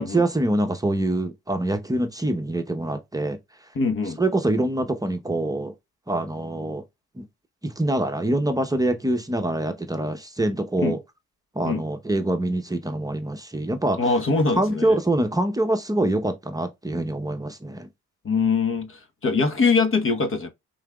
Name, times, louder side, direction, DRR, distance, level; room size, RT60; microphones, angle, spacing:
voice 1, 0.0-3.4 4.2-5.7 6.1-6.8 7.2-7.3 7.6-11.0 11.5-14.0 14.5-17.9, right 1 dB, 10° right, 0.8 m, -25 dB
voice 2, 3.7-4.2 10.8-11.0 11.7-11.8 14.0-15.0 18.2-20.5, left 4 dB, 45° left, 1.1 m, -23 dB
5.7 x 3.9 x 2.3 m
cardioid pair, 90°, 30 cm